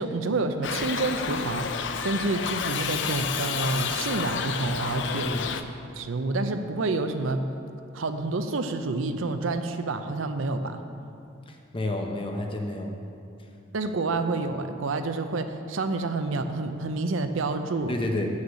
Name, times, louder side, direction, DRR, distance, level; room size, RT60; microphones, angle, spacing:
voice 1, 0.0-5.3 5.9-7.4 7.9-10.8 13.7-17.9, right 3 dB, 80° right, 8 dB, 0.6 m, -28 dB
Shout / Livestock farm animals working animals, 0.6-5.6, left 6 dB, 60° left, 0.4 m, -30 dB
voice 2, 11.5-13.0 17.9-18.3, left 1 dB, 25° left, 2 dB, 0.7 m, -30 dB
7.2 x 6.5 x 7.1 m, 2.5 s
head